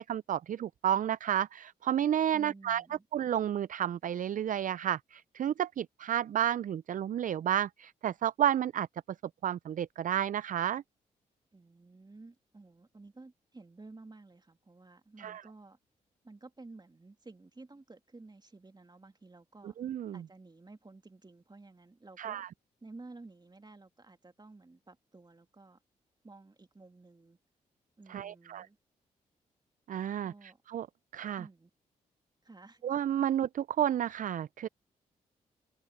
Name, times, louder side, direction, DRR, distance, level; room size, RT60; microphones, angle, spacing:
voice 1, 0.0-2.8 3.1-8.9 9.4-10.8 15.2-15.4 19.8-20.2 22.2-22.5 28.1-28.7 29.9-30.9 31.1-31.4 32.8-34.7, right 10 dB, 55° right, 0.4 m, -31 dB
voice 2, 2.3-3.1 11.5-15.8 16.2-19.8 20.1-22.5 22.8-25.8 26.2-27.4 28.0-28.8 30.2-30.6 31.4-31.7 32.4-32.8, right 3 dB, 25° right, 2.4 m, -53 dB
supercardioid pair, 45°, 16 cm